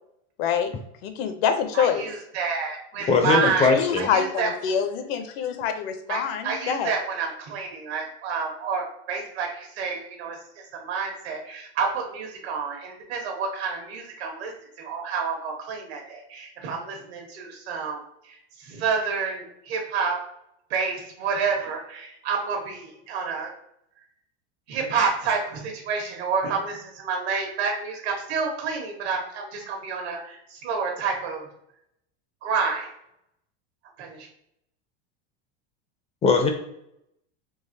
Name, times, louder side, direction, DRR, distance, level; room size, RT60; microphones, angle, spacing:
voice 1, 0.4-0.7 1.0-2.1 3.2-6.9, left 7 dB, 70° left, 8 dB, 0.6 m, -26 dB
voice 2, 1.7-4.5 6.1-10.4 10.7-14.5 14.8-20.1 20.7-23.5 24.7-31.5 32.4-32.9 34.0-34.3, right 5 dB, 75° right, 1 dB, 1.3 m, -29 dB
voice 3, 3.1-4.1 36.2-36.5, left 4 dB, 20° left, 4 dB, 0.4 m, -20 dB
4.0 x 2.8 x 2.6 m, 0.76 s
supercardioid pair, 135°, 32 cm